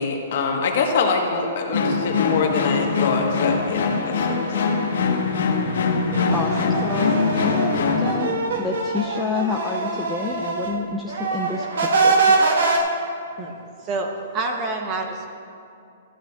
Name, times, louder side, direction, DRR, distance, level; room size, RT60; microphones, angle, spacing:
voice 1, 0.0-4.4, left 4 dB, 50° left, 2 dB, 1.2 m, -24 dB
sound 1, 1.7-8.1, left 4 dB, 80° left, 1.2 m, -22 dB
sound 2, 6.1-10.8 11.1-12.8, right 3 dB, 85° right, 1.4 m, -23 dB
voice 2, 6.3-8.3 8.6-12.2, left 4 dB, 5° left, -2 dB, 0.3 m, -29 dB
voice 3, 13.8-15.3, right 3 dB, 20° right, 3 dB, 0.8 m, -27 dB
14.5 x 11.0 x 2.4 m, 2.4 s
hypercardioid pair, 175°, 0 cm